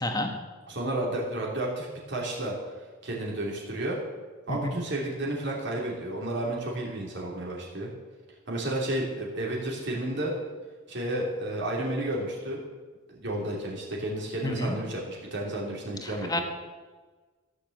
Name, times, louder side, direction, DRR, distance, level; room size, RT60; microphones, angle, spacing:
voice 1, 0.0-0.3 4.5-4.6 14.4-14.8 16.0-16.4, left 1 dB, 20° left, 4 dB, 1.4 m, -29 dB
voice 2, 0.7-2.6 3.0-4.0 4.5-7.9 8.5-10.3 10.9-12.6 13.1-16.4, right 1 dB, 55° right, -3 dB, 3.0 m, -31 dB
14.5 x 6.9 x 8.0 m, 1.3 s
head